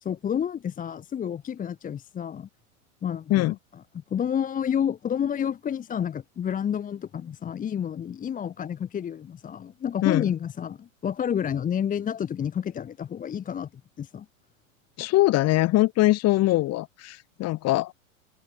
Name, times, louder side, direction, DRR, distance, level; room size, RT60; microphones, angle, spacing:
voice 1, 0.0-2.5 3.0-3.5 4.1-13.7 14.0-14.3, left 8 dB, 20° left, 1.2 m, -29 dB
voice 2, 15.0-17.9, left 17 dB, 40° left, 2.6 m, -22 dB
open air
hypercardioid pair, 110°, 40 cm